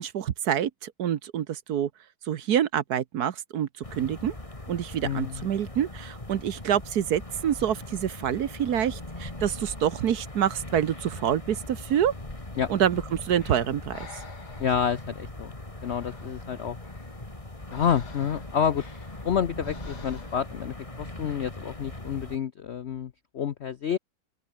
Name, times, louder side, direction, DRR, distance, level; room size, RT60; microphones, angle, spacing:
voice 1, 0.0-1.9 2.3-3.7 3.9-4.3 4.7-12.1 12.7-14.1, right 9 dB, 60° right, 1.3 m, -27 dB
sound 1, 3.8-22.4, left 2 dB, 15° left, 3.0 m, -40 dB
voice 2, 5.0-5.5 12.6-12.7 14.6-15.5 15.8-16.8 17.7-18.8 19.2-24.0, left 8 dB, 70° left, 0.6 m, -29 dB
Breathing, 12.8-20.6, left 4 dB, 55° left, 3.6 m, -50 dB
open air
omnidirectional pair, 2.1 m